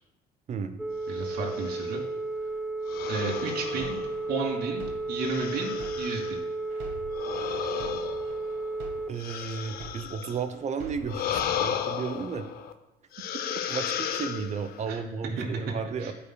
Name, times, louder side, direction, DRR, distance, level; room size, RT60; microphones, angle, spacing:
voice 1, 0.5-0.8 9.1-12.5 13.7-16.1, right 5 dB, 40° right, 9 dB, 0.7 m, -33 dB
Telephone, 0.8-9.1, right 2 dB, ahead, 0.3 m, -33 dB
voice 2, 1.1-2.0 3.1-4.0 4.3-6.4 14.9-15.0 15.4-15.5 16.0-16.1, right 4 dB, 65° right, -2 dB, 2.2 m, -32 dB
sound 1, 1.3-2.0 2.9-4.5 5.1-6.4 7.1-10.5 11.0-12.7 13.1-14.9, left 9 dB, 65° left, 0.6 m, -34 dB
sound 2, 3.3-6.3 6.7-10.3 10.7-11.3, right 4 dB, 90° right, 1.2 m, -46 dB
14.0 x 5.3 x 2.3 m, 0.97 s
cardioid pair, 110°, 17 cm